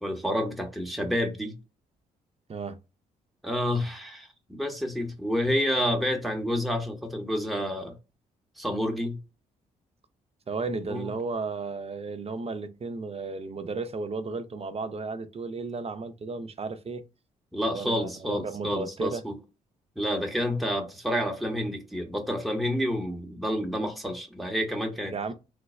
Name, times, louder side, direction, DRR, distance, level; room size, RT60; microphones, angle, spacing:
voice 1, 0.0-1.6 3.4-8.0 8.6-9.2 10.9-11.1 17.5-19.4 20.0-25.2, equal, ahead, 0.9 m, -29 dB
voice 2, 10.5-17.0 17.7-19.2 25.1-25.3, right 4 dB, 35° right, 0.6 m, -34 dB
3.2 x 2.0 x 3.5 m
hypercardioid pair, 50°, 17 cm